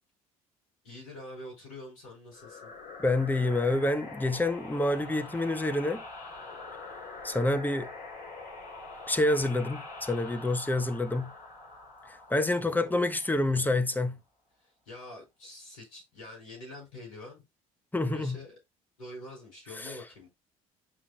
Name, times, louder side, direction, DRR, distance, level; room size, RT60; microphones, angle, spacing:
voice 1, 0.8-2.7 12.6-13.1 14.6-17.4 18.0-18.5 19.0-20.3, left 1 dB, 85° left, 5.1 m, -46 dB
sound 1, 2.3-13.7, left 3 dB, 55° left, 3.9 m, -44 dB
voice 2, 3.0-6.0 7.2-7.9 9.1-11.3 12.1-14.2 17.9-18.4 19.8-20.0, left 2 dB, 10° left, 1.1 m, -28 dB
8.7 x 5.6 x 2.3 m
hypercardioid pair, 60°, 18 cm